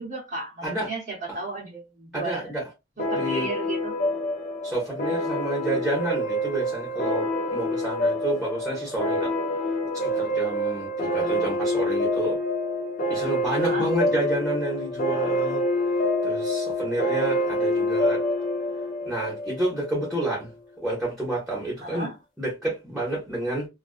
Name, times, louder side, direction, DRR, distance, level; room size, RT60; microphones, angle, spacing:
voice 1, 0.0-2.5 3.0-3.9 11.0-11.8 13.6-13.9 21.8-22.1, right 2 dB, 45° right, 0.7 m, -35 dB
voice 2, 2.1-2.6 3.1-3.5 4.6-9.3 9.9-12.4 13.1-15.6 16.2-18.2 19.0-20.5 20.8-22.1 22.4-23.7, right 1 dB, ahead, 0.8 m, -29 dB
sound 1, 3.0-20.1, left 1 dB, 40° left, 0.5 m, -27 dB
2.4 x 2.2 x 2.3 m
head